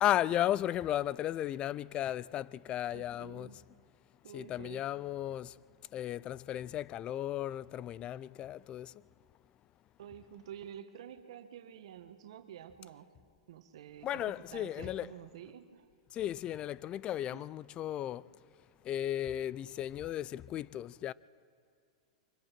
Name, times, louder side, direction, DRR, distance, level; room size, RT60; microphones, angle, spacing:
voice 1, 0.0-3.6 4.3-5.6 5.9-9.0 14.0-15.1 16.1-18.3 18.8-21.1, left 12 dB, 35° left, 0.5 m, -35 dB
voice 2, 2.9-3.6 4.2-4.8 10.0-13.1 13.5-15.9 17.3-17.5, right 10 dB, 70° right, 1.4 m, -49 dB
30.0 x 24.5 x 6.1 m
hypercardioid pair, 110°, 3 cm